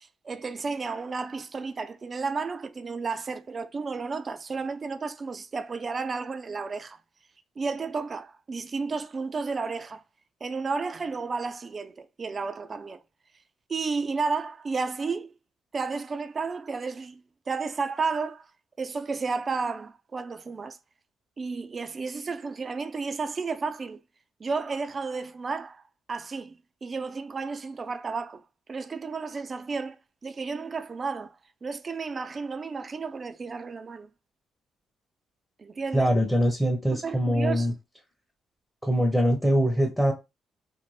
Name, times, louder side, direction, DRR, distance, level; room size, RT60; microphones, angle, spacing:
voice 1, 0.0-7.0 7.6-10.0 10.4-13.0 13.7-15.3 15.7-18.5 18.8-20.8 21.4-24.0 24.4-25.8 26.1-26.5 26.8-28.4 28.7-30.0 30.2-34.1 35.6-36.1 36.9-37.8, right 4 dB, 35° right, 0.3 m, -32 dB
voice 2, 35.9-37.7 38.8-40.1, equal, 5° left, 0.7 m, -23 dB
2.6 x 2.1 x 3.1 m
cardioid pair, 90°, 0 cm